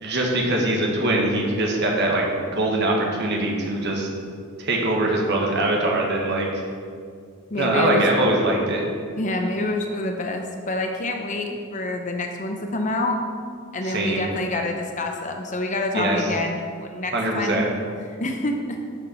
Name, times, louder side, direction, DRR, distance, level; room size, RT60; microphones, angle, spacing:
voice 1, 0.0-4.1 4.6-6.5 7.6-8.8 13.8-14.2 15.9-16.3 17.1-17.6, right 1 dB, 50° right, -1 dB, 1.5 m, -22 dB
voice 2, 7.5-8.1 9.2-13.2 13.7-17.7 18.1-18.8, left 2 dB, 35° left, 4 dB, 0.7 m, -27 dB
12.0 x 6.5 x 4.4 m, 2.2 s
head